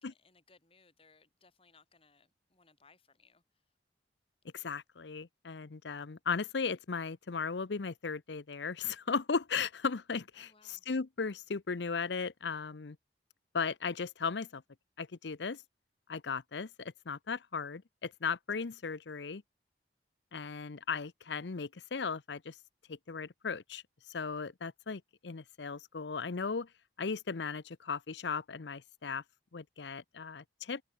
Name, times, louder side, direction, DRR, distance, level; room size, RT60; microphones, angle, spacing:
voice 1, 0.0-3.6 10.3-10.9, left 4 dB, 30° left, 4.2 m, -65 dB
voice 2, 4.5-13.0 13.5-14.6 15.0-15.6 16.1-19.4 20.3-22.5 22.9-23.8 24.1-26.7 27.0-29.2 29.5-30.8, left 5 dB, 75° left, 0.7 m, -36 dB
open air
head